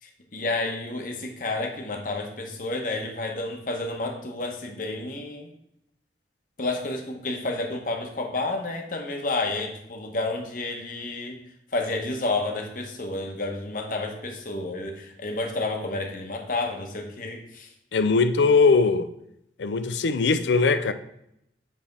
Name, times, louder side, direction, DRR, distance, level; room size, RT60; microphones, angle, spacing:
voice 1, 0.0-5.5 6.6-17.7, left 2 dB, 50° left, 1.0 m, -30 dB
voice 2, 17.9-19.1 19.6-20.9, left 4 dB, 85° left, 0.5 m, -20 dB
7.5 x 3.5 x 5.4 m
head